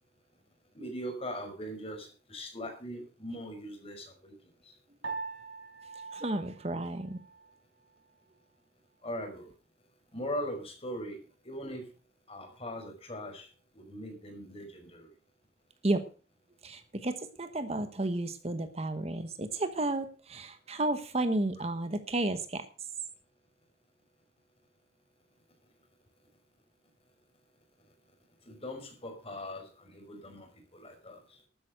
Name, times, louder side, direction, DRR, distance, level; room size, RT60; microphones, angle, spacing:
voice 1, 0.7-4.3 4.6-4.7 9.0-9.5 10.1-11.2 11.4-11.9 12.3-13.5 13.7-15.1 28.5-31.4, equal, 35° left, 3 dB, 5.2 m, -40 dB
Piano, 5.0-7.6, right 4 dB, 90° right, 4.3 m, -42 dB
voice 2, 6.1-7.2 15.8-16.0 16.6-22.6, right 2 dB, 35° right, 10 dB, 1.2 m, -32 dB
12.5 x 9.3 x 6.4 m, 0.37 s
head